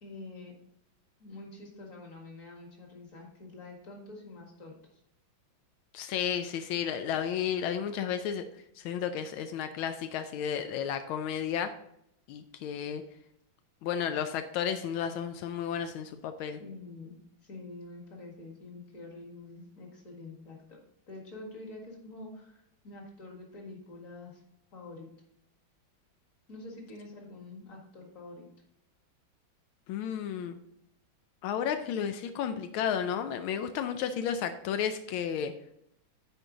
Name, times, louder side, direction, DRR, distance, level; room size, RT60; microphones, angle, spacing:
voice 1, 0.0-0.5 1.2-5.0 16.6-20.8 21.1-24.4 24.7-25.1 26.5-28.5, left 2 dB, 40° left, 0 dB, 2.2 m, -46 dB
voice 2, 5.9-8.4 8.8-11.7 12.3-13.0 13.8-16.6 29.9-30.6 31.4-35.5, left 8 dB, 85° left, 8 dB, 1.4 m, -32 dB
10.0 x 4.5 x 3.9 m, 0.76 s
omnidirectional pair, 2.2 m